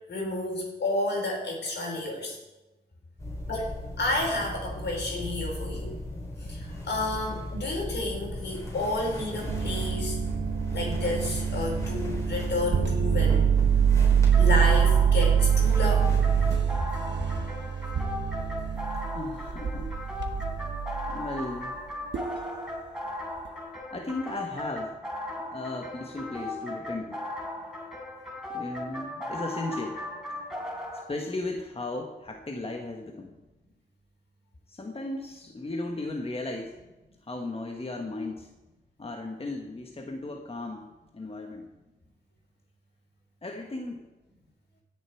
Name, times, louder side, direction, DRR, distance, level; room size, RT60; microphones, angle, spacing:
voice 1, 0.1-2.4 3.5-5.9 6.4-10.2 10.7-13.5 14.4-16.1, left 2 dB, 70° left, -1 dB, 4.4 m, -31 dB
sound 1, 3.2-16.5, left 1 dB, 15° left, 4.8 m, -37 dB
sound 2, 9.5-21.3 22.1-22.5, right 8 dB, 80° right, 1.0 m, -25 dB
sound 3, 14.3-31.0, left 1 dB, 5° right, 3.6 m, -37 dB
voice 2, 19.1-20.5 21.1-21.7 23.9-24.9 25.4-27.3 28.5-30.0 30.9-33.3 34.7-36.8 37.2-38.5 39.0-41.7 43.4-44.1, left 2 dB, 30° left, 3 dB, 1.3 m, -36 dB
17.0 x 7.0 x 4.5 m, 1.1 s
cardioid pair, 60°, 18 cm